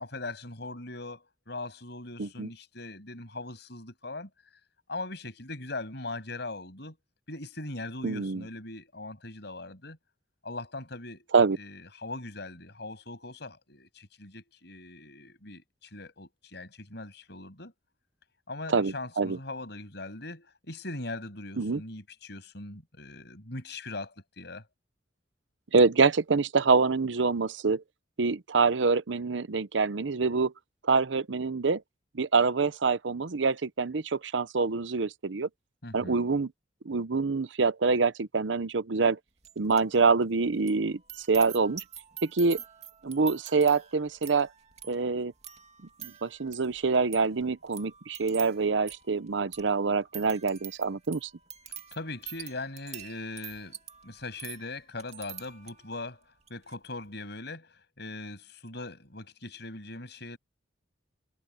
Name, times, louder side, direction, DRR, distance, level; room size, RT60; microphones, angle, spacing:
voice 1, 0.0-4.3 4.9-7.0 7.3-10.0 10.4-11.3 11.6-17.7 18.5-24.6 35.8-36.2 51.9-53.8 54.0-56.2 56.5-60.4, left 2 dB, 65° left, 7.4 m, -40 dB
voice 2, 2.2-2.5 8.0-8.4 11.3-11.6 18.7-19.4 21.6-21.8 25.7-27.8 28.2-30.5 30.9-31.8 32.1-35.5 35.9-36.5 36.9-39.2 39.6-41.0 41.3-41.8 42.2-42.6 43.0-44.5 44.9-45.3 46.0-51.3, right 4 dB, 75° right, 0.8 m, -26 dB
sound 1, 39.4-40.0 40.2-56.0 56.4-56.7, right 9 dB, 35° right, 2.6 m, -46 dB
head